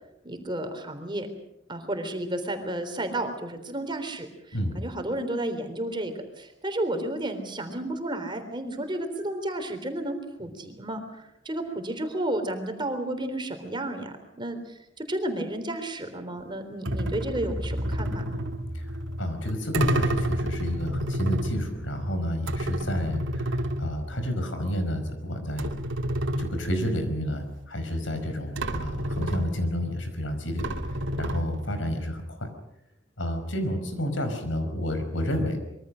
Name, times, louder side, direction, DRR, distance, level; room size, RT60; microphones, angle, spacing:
voice 1, 0.2-1.3 1.7-18.4, right 1 dB, 25° right, 6 dB, 3.6 m, -32 dB
sound 1, 16.8-24.7 25.0-25.1 25.6-27.2 28.2-28.3 28.6-29.9 30.6-31.9, right 1 dB, 85° right, 2.7 m, -30 dB
voice 2, 19.2-25.7 26.4-30.6 30.9-32.5 33.2-35.6, equal, 85° left, 7 dB, 5.3 m, -30 dB
25.5 x 23.0 x 6.5 m, 0.85 s
head